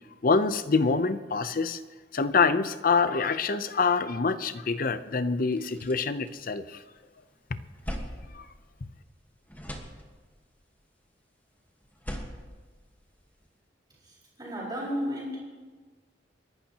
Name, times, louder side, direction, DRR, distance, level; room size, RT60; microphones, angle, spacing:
voice 1, 0.2-1.8 2.1-6.8 8.3-8.4, left 4 dB, 50° left, 13 dB, 0.6 m, -25 dB
sound 1, 4.9-5.0 5.3-7.0 7.4-9.2 9.5-10.5 11.8-13.5, equal, 10° left, 1.4 m, -41 dB
voice 2, 14.0-15.4, equal, 20° right, -11 dB, 5.1 m, -33 dB
29.5 x 11.5 x 2.9 m, 1.4 s
head